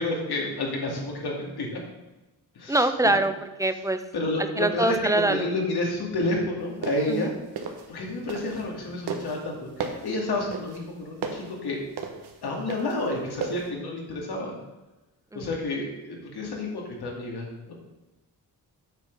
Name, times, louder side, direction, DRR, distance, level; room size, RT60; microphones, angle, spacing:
voice 1, 0.0-1.8 2.6-2.9 4.1-7.3 7.9-11.9 12.4-14.5 15.3-17.8, left 2 dB, 80° left, -1 dB, 2.4 m, -30 dB
voice 2, 2.7-3.3 3.6-4.0 4.6-5.5 7.1-7.3 15.3-15.5, right 2 dB, 10° right, 9 dB, 0.4 m, -23 dB
sound 1, 6.6-8.8 9.1-13.7, right 5 dB, 80° right, 1.3 m, -35 dB
8.2 x 6.3 x 5.3 m, 1.1 s
wide cardioid pair, 140°, 39 cm